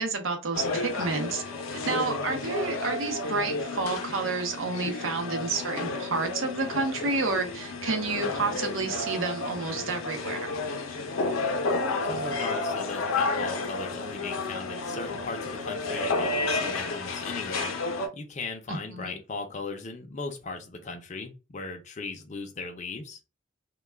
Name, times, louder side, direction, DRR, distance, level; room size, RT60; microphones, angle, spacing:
voice 1, 0.0-1.4 1.9-10.5 18.7-19.2, right 3 dB, 80° right, 0.7 m, -30 dB
sound 1, 0.5-18.1, left 3 dB, 90° left, 0.6 m, -31 dB
voice 2, 12.0-17.8 18.1-23.2, left 3 dB, 35° left, 0.4 m, -38 dB
2.2 x 2.2 x 3.2 m
head